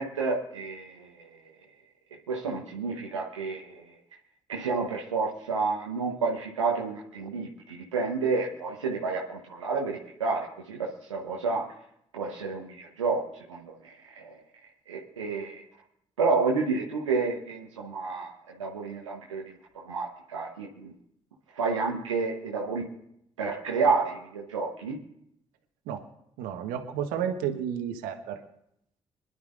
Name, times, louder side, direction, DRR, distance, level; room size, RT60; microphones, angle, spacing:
voice 1, 0.0-1.5 2.3-3.9 4.5-11.7 12.1-14.4 14.9-15.6 16.2-20.9 21.5-22.9 23.4-25.0, right 4 dB, 85° right, -2 dB, 1.1 m, -30 dB
voice 2, 26.4-28.4, right 9 dB, 70° right, 6 dB, 1.4 m, -31 dB
26.0 x 11.0 x 2.6 m, 0.77 s
figure-of-eight pair, 40°, 15 cm